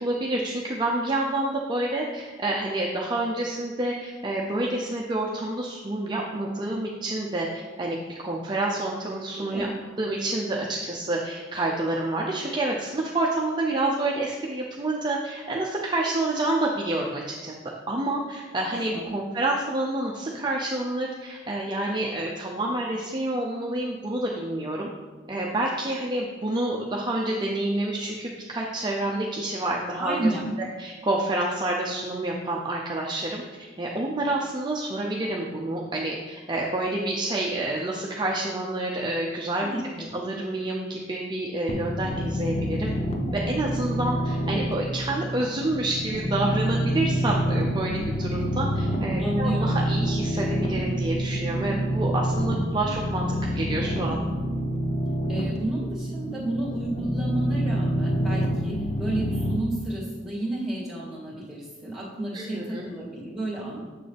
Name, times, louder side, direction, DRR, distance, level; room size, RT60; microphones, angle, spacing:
voice 1, 0.0-7.5 7.8-8.0 8.2-9.7 10.0-17.5 17.9-24.9 25.3-30.3 30.6-39.7 40.1-42.9 43.3-54.2 62.3-62.8, right 2 dB, 25° right, -2 dB, 0.6 m, -28 dB
voice 2, 30.0-30.5 39.6-40.1 49.2-49.8 55.3-63.8, right 1 dB, ahead, -6 dB, 2.3 m, -31 dB
sound 1, 41.7-59.6, equal, 35° left, 0.7 m, -27 dB
7.5 x 6.6 x 3.4 m, 1.4 s
head